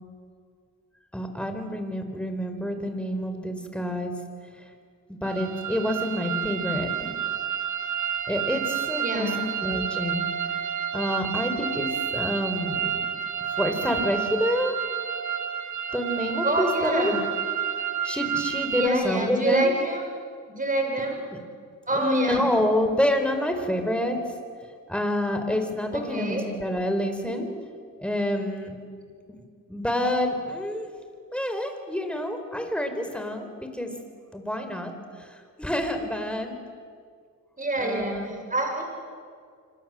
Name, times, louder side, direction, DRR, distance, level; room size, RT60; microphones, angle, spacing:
voice 1, 1.1-4.1 5.1-7.1 8.3-10.3 10.9-13.1 13.6-14.8 15.9-17.1 17.8-19.7 21.3-21.4 21.9-24.2 24.9-27.5 28.0-28.8 29.7-30.9 31.3-33.9 34.3-36.6 37.8-38.3, left 1 dB, 5° left, 6 dB, 4.6 m, -28 dB
sound 1, 5.2-18.9, right 8 dB, 55° right, 1.7 m, -30 dB
voice 2, 9.0-9.4 16.4-17.2 18.8-20.1 20.6-21.2 21.9-22.5 25.9-26.5 37.6-38.8, right 2 dB, 25° right, 2 dB, 6.6 m, -26 dB
27.0 x 25.5 x 7.8 m, 2.1 s
cardioid pair, 80°, 34 cm